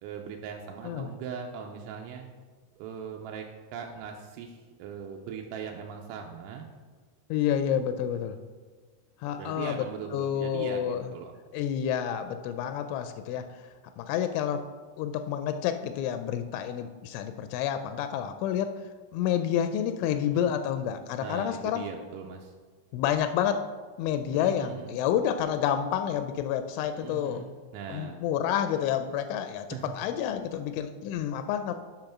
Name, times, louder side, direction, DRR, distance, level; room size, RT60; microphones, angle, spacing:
voice 1, 0.0-2.3 2.8-3.5 3.7-6.7 9.4-11.3 20.3-20.6 21.2-22.5 24.3-25.0 26.9-28.2 29.7-29.8, right 7 dB, 90° right, 1 dB, 3.0 m, -40 dB
voice 2, 7.3-8.4 9.2-11.1 11.5-13.4 14.0-14.6 15.0-18.7 19.1-21.8 22.9-23.6 24.0-27.4 27.9-31.7, left 9 dB, 85° left, 9 dB, 2.9 m, -29 dB
8.9 x 5.4 x 5.9 m, 1.4 s
omnidirectional pair, 5.4 m